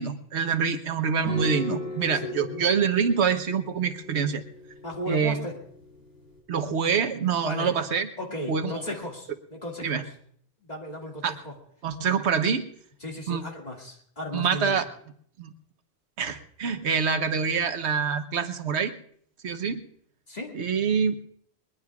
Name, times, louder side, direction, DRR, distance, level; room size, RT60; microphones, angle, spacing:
voice 1, 0.0-4.4 5.1-5.3 6.5-8.1 8.5-8.7 9.8-10.0 11.2-11.3 11.8-12.6 13.3-13.4 14.3-14.8 15.4-15.5 16.2-18.9 19.4-19.8 20.5-21.1, right 6 dB, 90° right, 9 dB, 1.3 m, -25 dB
sound 1, 1.2-6.4, left 1 dB, 70° left, 6.5 m, -38 dB
voice 2, 1.5-2.6 4.8-5.5 7.4-7.7 8.2-10.0 10.6-11.5 13.0-14.8 20.3-20.6, left 1 dB, 40° left, 0 dB, 2.4 m, -36 dB
21.0 x 21.0 x 2.4 m, 0.64 s
omnidirectional pair, 1.1 m